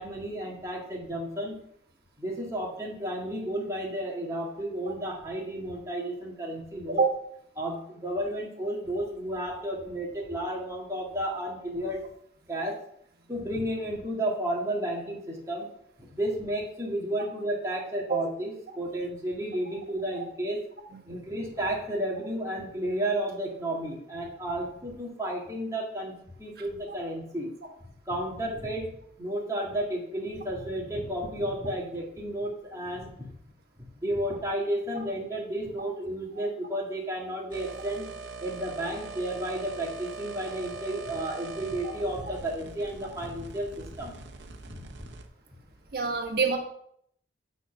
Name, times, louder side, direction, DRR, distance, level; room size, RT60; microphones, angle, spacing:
voice 1, 0.0-1.6 2.2-7.0 7.6-12.0 12.5-12.8 13.3-15.7 16.1-20.6 21.1-26.1 26.4-27.5 28.1-28.9 29.2-33.3 34.0-38.1 38.4-44.1 44.7-45.1, right 1 dB, 15° right, -3 dB, 1.9 m, -32 dB
sound 1, 37.5-45.3, right 3 dB, 75° right, 0.9 m, -42 dB
voice 2, 45.9-46.6, right 5 dB, 55° right, 1 dB, 1.5 m, -25 dB
9.0 x 4.2 x 5.8 m, 0.69 s
head